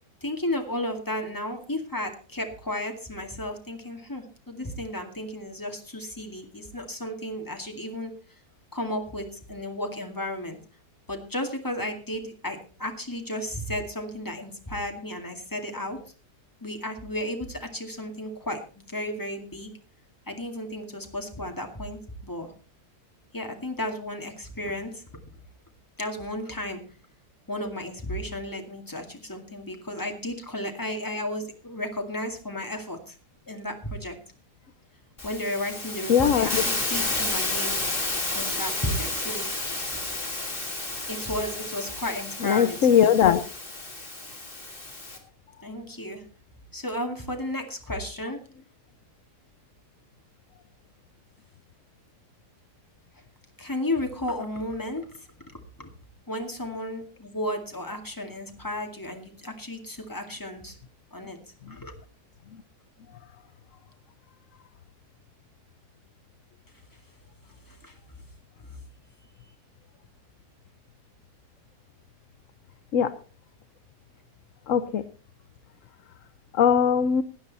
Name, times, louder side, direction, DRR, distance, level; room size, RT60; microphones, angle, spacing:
voice 1, 0.2-8.1 8.7-10.6 11.1-16.0 16.6-19.7 20.3-22.5 23.3-25.0 26.0-26.8 27.5-33.2 33.5-34.2 35.2-37.8 38.3-39.5 39.9-40.0 41.1-43.1 45.6-46.2 46.7-48.4 53.6-55.1 55.8-55.9 56.3-60.8 61.1-61.4 61.7-61.9 67.7-68.0 68.6-68.8, left 1 dB, 10° left, 3 dB, 2.2 m, -33 dB
Hiss, 35.2-45.2, left 2 dB, 30° left, 3.0 m, -31 dB
voice 2, 36.1-36.6 42.4-43.4 72.9-73.1 74.7-75.0 76.5-77.2, left 8 dB, 60° left, 12 dB, 1.0 m, -20 dB
17.5 x 9.9 x 4.1 m, 0.38 s
omnidirectional pair, 1.7 m